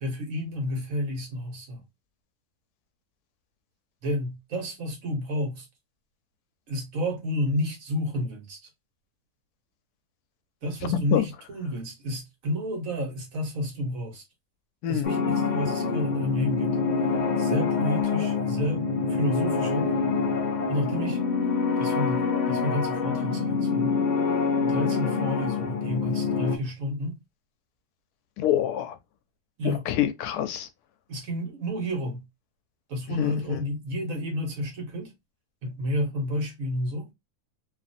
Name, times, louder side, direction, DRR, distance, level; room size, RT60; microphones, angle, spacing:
voice 1, 0.0-1.8 4.0-5.7 6.7-8.6 10.6-14.2 14.9-16.8 17.4-19.9 20.7-21.2 21.8-24.0 24.6-27.2 29.6-29.8 31.1-32.2 32.9-35.1 35.6-37.1, equal, 65° right, 1.4 m, -30 dB
voice 2, 10.8-11.3 14.8-15.1 28.4-29.0 29.6-30.7 33.1-33.7, left 10 dB, 85° left, 1.1 m, -27 dB
sound 1, 15.0-26.6, left 5 dB, 70° left, 0.4 m, -26 dB
2.8 x 2.5 x 2.6 m
omnidirectional pair, 1.6 m